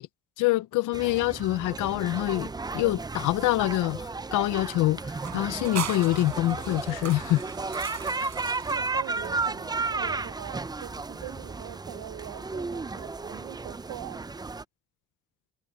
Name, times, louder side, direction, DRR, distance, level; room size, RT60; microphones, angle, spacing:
voice 1, 0.4-7.4 8.2-8.3, left 16 dB, 90° left, 0.7 m, -26 dB
sound 1, 0.9-14.6, right 3 dB, 15° right, 0.5 m, -34 dB
sound 2, 5.1-9.7, right 10 dB, 65° right, 4.1 m, -40 dB
voice 2, 8.7-14.3, right 15 dB, 85° right, 0.8 m, -42 dB
cardioid pair, 90°, 30 cm